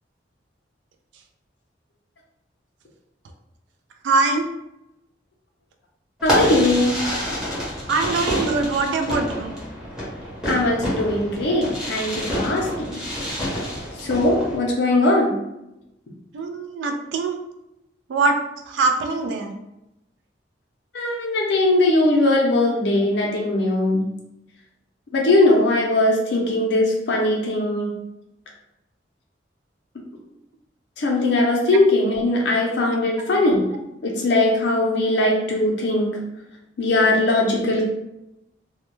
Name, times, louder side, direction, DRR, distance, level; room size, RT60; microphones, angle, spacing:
voice 1, 4.0-4.4 7.9-9.5 16.3-17.4 18.1-18.3 18.7-19.5, right 3 dB, 75° right, 4 dB, 0.3 m, -22 dB
voice 2, 6.2-7.0 10.4-13.0 14.0-15.4 20.9-24.1 25.1-27.9 31.0-33.6 34.0-36.1 36.8-37.8, left 2 dB, 65° left, -1 dB, 0.5 m, -20 dB
Fireworks, 6.2-14.6, equal, 5° right, 0.8 m, -27 dB
2.1 x 2.1 x 2.9 m, 0.88 s
head